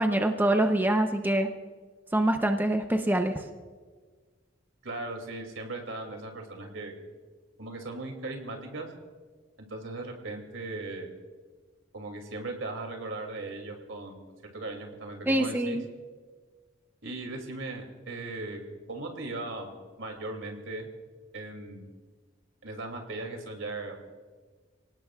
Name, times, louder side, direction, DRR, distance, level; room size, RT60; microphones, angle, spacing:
voice 1, 0.0-1.5 2.1-3.4 15.3-15.8, right 1 dB, 10° right, 5 dB, 0.7 m, -25 dB
voice 2, 4.8-6.9 7.6-8.9 9.6-11.1 11.9-14.2 14.5-15.8 17.0-18.6 18.9-19.7 20.0-20.9 21.3-21.9 22.6-24.1, right 2 dB, 85° right, 3 dB, 2.6 m, -38 dB
29.0 x 18.0 x 2.4 m, 1.5 s
head